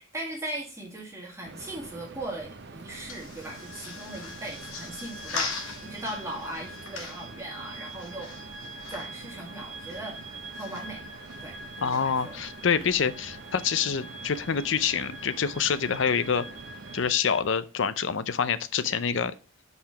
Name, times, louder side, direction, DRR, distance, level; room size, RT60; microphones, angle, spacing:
voice 1, 0.0-8.3 8.9-10.2 10.5-11.0 11.4-12.4, right 1 dB, 15° right, -2 dB, 1.8 m, -39 dB
sound 1, 1.4-17.1, right 3 dB, 55° right, 0.7 m, -46 dB
sound 2, 2.5-13.1, left 4 dB, 80° left, 1.8 m, -42 dB
sound 3, 3.4-17.4, right 2 dB, 75° right, 1.8 m, -45 dB
voice 2, 11.8-16.5 16.9-19.3, left 6 dB, 60° left, 13 dB, 0.5 m, -26 dB
5.5 x 4.7 x 5.6 m, 0.34 s
head